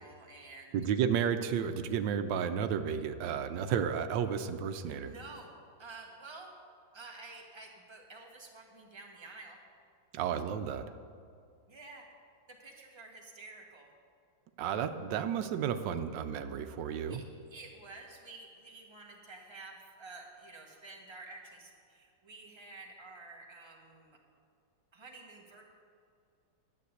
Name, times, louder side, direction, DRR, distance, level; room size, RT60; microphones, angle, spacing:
voice 1, 0.0-0.7 4.8-5.5 5.8-6.5 6.9-9.6 11.7-12.1 12.5-13.9 17.1-17.2 17.5-24.2 24.9-25.6, right 3 dB, 15° right, 0 dB, 1.3 m, -50 dB
voice 2, 0.7-5.1 10.1-10.8 14.6-17.2, right 8 dB, 85° right, 9 dB, 1.3 m, -32 dB
11.0 x 7.5 x 8.2 m, 2.4 s
omnidirectional pair, 1.9 m